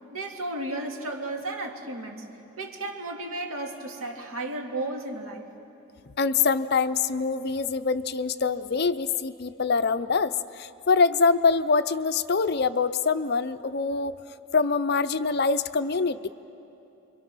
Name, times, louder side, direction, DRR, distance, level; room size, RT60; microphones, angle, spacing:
voice 1, 0.1-2.3 2.6-5.5, right 2 dB, 85° right, 2 dB, 2.5 m, -33 dB
voice 2, 6.2-14.1 14.5-16.3, left 4 dB, 50° left, 13 dB, 0.6 m, -24 dB
28.0 x 23.5 x 6.2 m, 2.9 s
head